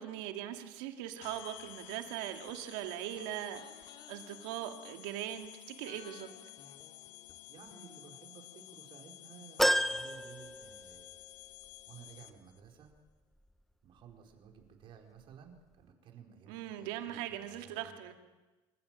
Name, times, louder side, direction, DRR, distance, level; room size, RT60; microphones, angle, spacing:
voice 1, 0.0-6.3 16.5-18.1, right 12 dB, 80° right, 5 dB, 2.4 m, -40 dB
sound 1, 1.2-12.6, left 17 dB, 75° left, 1.3 m, -52 dB
sound 2, 2.5-5.5 5.8-9.7 9.9-10.0, left 7 dB, 40° left, 2.7 m, -60 dB
voice 2, 7.5-11.2 11.9-12.9 13.8-18.0, right 7 dB, 50° right, 2 dB, 4.6 m, -55 dB
sound 3, 9.6-11.2 11.7-11.8 13.0-13.1, equal, ahead, 0.9 m, -31 dB
26.0 x 15.5 x 7.7 m, 1.2 s
supercardioid pair, 100°, 11 cm